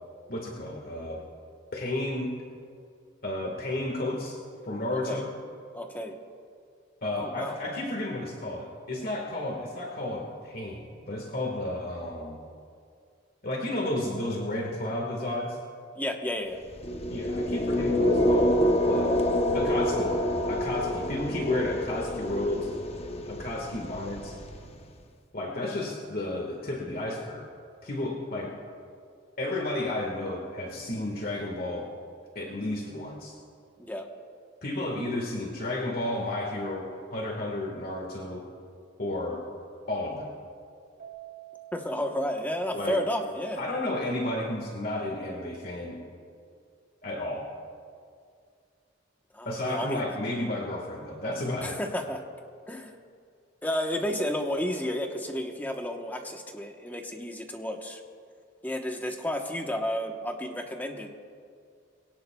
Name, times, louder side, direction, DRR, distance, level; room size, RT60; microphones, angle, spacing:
voice 1, 0.3-1.2 1.7-2.3 3.2-4.3 4.6-5.3 7.0-12.4 13.4-15.6 17.1-19.2 19.5-20.1 20.5-22.7 23.3-24.3 25.3-27.5 27.8-28.6 29.4-31.9 32.3-33.3 34.6-38.5 39.0-39.4 39.9-40.3 42.7-43.0 43.6-46.0 47.0-47.5 49.4-51.8, left 1 dB, 50° left, 0 dB, 1.6 m, -32 dB
voice 2, 4.9-5.2 5.7-6.1 7.2-7.6 15.9-16.6 33.8-34.1 41.7-43.6 49.3-50.0 51.6-52.2 52.7-52.9 53.6-58.0 58.6-61.1, left 1 dB, 10° left, 3 dB, 1.0 m, -32 dB
sound 1, 16.7-24.8, equal, 35° left, 0.8 m, -27 dB
Keyboard (musical), 41.0-43.5, right 10 dB, 50° right, 3.2 m, -48 dB
21.5 x 17.5 x 2.3 m, 2.3 s
head